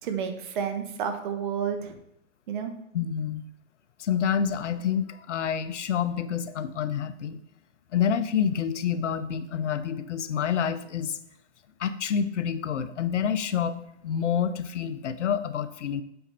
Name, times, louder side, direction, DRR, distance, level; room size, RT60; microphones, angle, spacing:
voice 1, 0.0-2.0 2.5-2.7, right 7 dB, 40° right, 7 dB, 1.1 m, -30 dB
voice 2, 2.9-3.4 4.0-7.4 7.9-11.2 11.8-16.0, left 8 dB, 75° left, 13 dB, 0.7 m, -28 dB
7.9 x 5.2 x 4.3 m, 0.80 s
hypercardioid pair, 135°, 36 cm